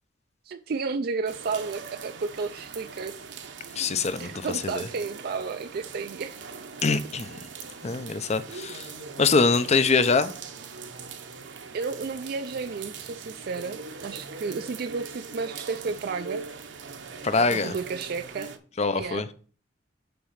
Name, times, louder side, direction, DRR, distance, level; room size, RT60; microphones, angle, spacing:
voice 1, 0.5-3.5 4.2-6.4 11.7-16.4 17.3-18.5 19.0-19.2, right 4 dB, 55° right, 0.4 m, -32 dB
sound 1, 1.3-18.6, right 5 dB, 70° right, 0.9 m, -41 dB
voice 2, 3.8-4.9 6.8-7.4 7.8-8.9 9.2-10.3 17.2-17.7 18.8-19.3, left 4 dB, 35° left, 0.6 m, -24 dB
6.9 x 4.2 x 6.4 m
head